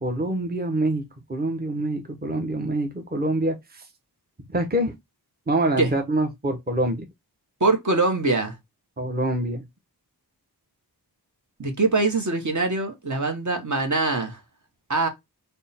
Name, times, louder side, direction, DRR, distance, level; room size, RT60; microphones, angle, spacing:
voice 1, 0.0-3.8 4.5-5.0 5.5-7.1 9.0-9.6, right 1 dB, 25° right, 0.9 m, -25 dB
voice 2, 7.6-8.6 11.6-14.4 14.9-15.1, right 3 dB, 50° right, 1.0 m, -23 dB
3.5 x 2.2 x 4.1 m
wide cardioid pair, 40°, 39 cm